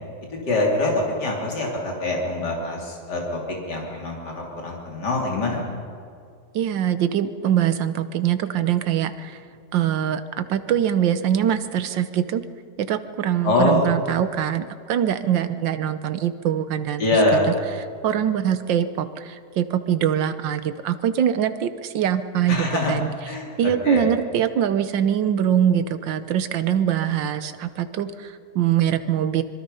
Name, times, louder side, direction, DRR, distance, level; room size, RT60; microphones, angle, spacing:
voice 1, 0.5-3.4 3.7-5.6 13.4-13.8 17.0-17.5 22.5-23.0 23.3-24.1, left 2 dB, 65° left, -2 dB, 3.9 m, -24 dB
voice 2, 6.5-9.4 9.7-12.4 12.8-17.0 17.3-17.4 18.0-23.1 23.6-29.4, right 9 dB, 90° right, 11 dB, 1.7 m, -23 dB
25.0 x 22.5 x 5.6 m, 2.3 s
omnidirectional pair, 2.0 m